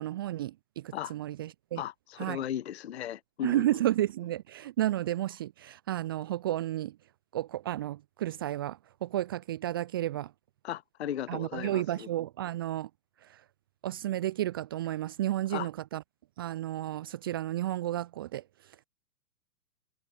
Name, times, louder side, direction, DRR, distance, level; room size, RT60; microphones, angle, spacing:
voice 1, 0.0-1.8 2.2-2.4 3.4-7.0 7.3-10.3 11.3-12.9 13.2-13.4 13.8-16.0 16.4-18.8, right 13 dB, 15° right, 0.6 m, -32 dB
voice 2, 1.8-3.6 10.6-12.1 15.5-15.7, left 11 dB, 40° left, 0.6 m, -36 dB
figure-of-eight pair, 120°, 50 cm